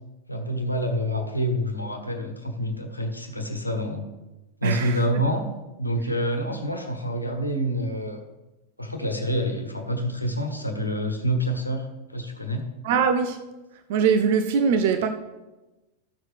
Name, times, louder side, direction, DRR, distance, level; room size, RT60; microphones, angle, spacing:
voice 1, 0.3-4.1 4.6-5.4 5.8-8.2 8.8-11.9 12.1-12.7, equal, 85° left, 4 dB, 1.2 m, -27 dB
voice 2, 4.6-5.0 12.8-13.4 13.9-15.1, right 6 dB, 50° right, 8 dB, 0.6 m, -22 dB
14.0 x 6.3 x 3.4 m, 1.1 s
figure-of-eight pair, 90°, 0 cm